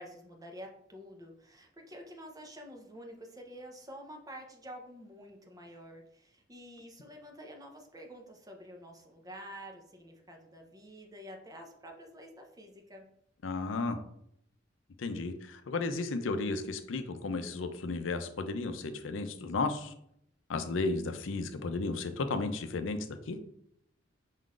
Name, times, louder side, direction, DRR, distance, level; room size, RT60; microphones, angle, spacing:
voice 1, 0.0-13.1, equal, 20° right, 2 dB, 0.7 m, -49 dB
voice 2, 13.4-14.0 15.0-19.9 20.5-23.4, left 3 dB, 85° left, 8 dB, 0.5 m, -34 dB
5.5 x 3.7 x 2.4 m, 0.72 s
head